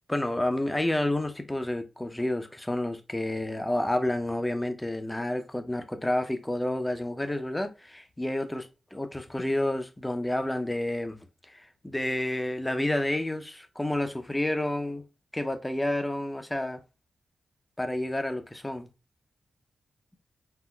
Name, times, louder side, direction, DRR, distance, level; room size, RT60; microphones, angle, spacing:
voice 1, 0.1-11.2 11.5-15.0 15.3-16.8 17.8-18.9, left 1 dB, 15° left, 0.5 m, -30 dB
3.7 x 2.0 x 2.2 m
cardioid pair, 50°, 0 cm